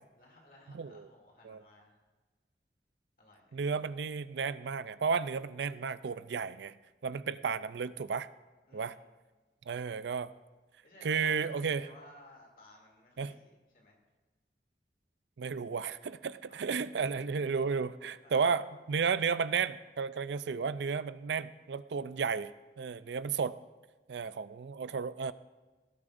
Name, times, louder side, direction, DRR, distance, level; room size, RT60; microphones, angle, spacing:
voice 1, 0.2-2.0 3.2-3.6 8.7-9.1 10.8-14.0 16.5-16.6 18.2-18.8, left 1 dB, 50° left, -1 dB, 2.7 m, -58 dB
voice 2, 0.7-1.1 1.4-1.6 3.5-6.7 7.0-8.3 8.7-9.0 9.7-10.3 11.0-11.9 13.2-13.3 15.4-22.5 22.8-23.6 24.1-25.3, right 5 dB, 80° right, 15 dB, 0.4 m, -33 dB
18.0 x 12.0 x 2.6 m, 1.2 s
head